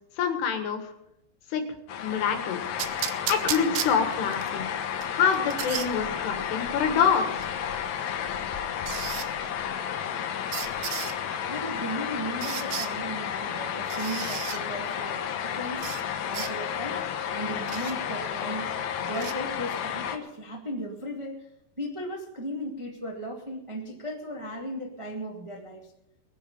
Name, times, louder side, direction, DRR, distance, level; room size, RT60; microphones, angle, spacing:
voice 1, 0.2-0.9 1.5-1.7 2.0-2.6 3.3-4.7 5.1-7.4, left 6 dB, 85° left, 6 dB, 3.7 m, -26 dB
sound 1, 1.9-20.2, left 8 dB, 70° left, 1.8 m, -32 dB
sound 2, 2.8-4.5 5.0-5.9 7.4-7.5 8.9-9.3 10.5-11.2 12.4-12.9 13.9-14.6 15.8-16.0 16.3-16.5 17.7-17.9 19.1-19.3, right 12 dB, 75° right, 2.0 m, -33 dB
voice 2, 11.5-16.0 16.2-17.1 17.3-18.7 19.0-21.5 21.8-25.9, equal, 50° right, 0 dB, 0.3 m, -36 dB
20.5 x 11.0 x 5.4 m, 0.82 s
omnidirectional pair, 4.7 m